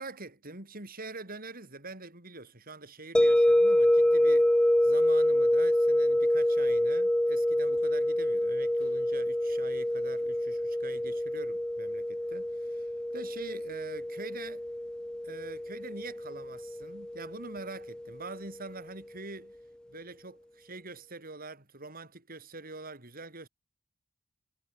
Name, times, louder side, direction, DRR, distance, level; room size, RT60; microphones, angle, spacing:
voice 1, 0.0-4.5 4.8-14.7 15.2-19.6 19.9-23.5, right 3 dB, 45° right, 7.3 m, -45 dB
sound 1, 3.1-18.1, left 1 dB, 5° left, 0.3 m, -27 dB
head